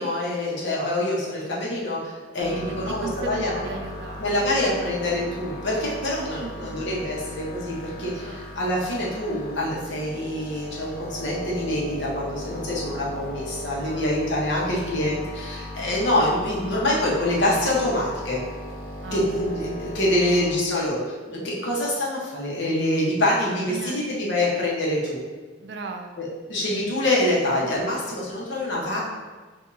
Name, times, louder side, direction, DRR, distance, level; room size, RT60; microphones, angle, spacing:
voice 1, 0.0-3.6 4.2-18.4 19.1-21.0 21.3-25.2 26.2-29.0, left 1 dB, 70° left, -4 dB, 1.1 m, -25 dB
sound 1, 2.4-20.6, left 1 dB, 50° left, 0.7 m, -37 dB
voice 2, 2.7-4.5 6.2-6.8 7.9-8.5 13.8-14.4 19.0-19.6 23.7-24.1 25.6-26.2, right 4 dB, 65° right, 4 dB, 0.4 m, -38 dB
6.1 x 2.7 x 2.7 m, 1.4 s
head